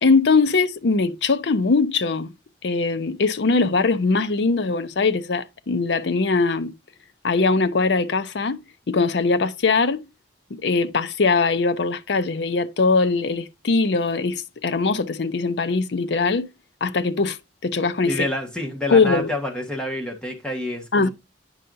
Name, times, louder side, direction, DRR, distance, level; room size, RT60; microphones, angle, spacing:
voice 1, 0.0-2.3 2.6-6.7 7.2-8.6 8.9-10.0 10.5-16.5 16.8-17.4 17.6-18.3 18.9-19.3 20.9-21.1, left 4 dB, 65° left, 0.6 m, -21 dB
voice 2, 18.0-21.1, left 1 dB, 5° left, 1.4 m, -28 dB
8.9 x 5.5 x 2.6 m
head